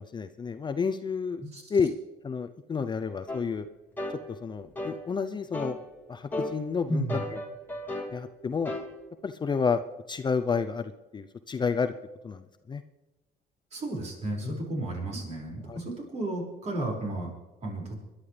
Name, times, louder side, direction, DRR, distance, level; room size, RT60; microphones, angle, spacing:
voice 1, 0.0-1.4 1.7-1.9 2.2-3.7 4.4-5.8 6.1-7.1 7.3-7.4 8.1-8.7 9.2-9.8 10.1-11.9 12.2-12.8 14.4-14.6 15.7-15.8, left 5 dB, 25° left, 9 dB, 0.6 m, -30 dB
sound 1, 3.3-3.4 4.0-4.2 4.8-5.0 5.5-5.8 6.3-6.6 7.1-8.1 8.6-8.9, left 1 dB, 10° left, 2.1 m, -34 dB
voice 2, 6.9-7.2 13.7-17.3 17.6-18.0, right 1 dB, 40° right, -1 dB, 5.6 m, -33 dB
25.5 x 11.5 x 3.4 m, 1.1 s
cardioid pair, 110°, 17 cm